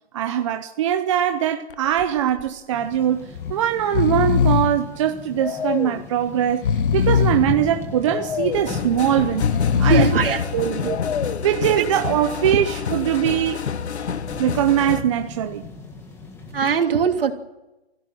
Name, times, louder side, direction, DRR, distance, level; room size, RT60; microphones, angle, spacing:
voice 1, 0.1-9.5 9.8-10.1 10.5-10.9 11.4-13.7 14.4-15.6, right 10 dB, 30° right, 0.9 m, -22 dB
Breathing, 1.7-2.1 2.4-2.5 3.3-3.5 3.8-4.8 5.4-6.0 6.5-7.5 8.1-8.7 9.3-10.3 10.8-11.5, left 7 dB, 55° left, 1.3 m, -22 dB
sound 1, 2.7-16.8, left 3 dB, 5° left, 2.0 m, -37 dB
sound 2, 8.5-15.0, left 7 dB, 85° left, 1.5 m, -29 dB
voice 2, 9.8-10.5 10.8-11.0 11.8-11.9 12.5-12.6 16.5-17.3, right 7 dB, 60° right, 3.2 m, -20 dB
25.0 x 16.5 x 9.0 m
hypercardioid pair, 165°, 32 cm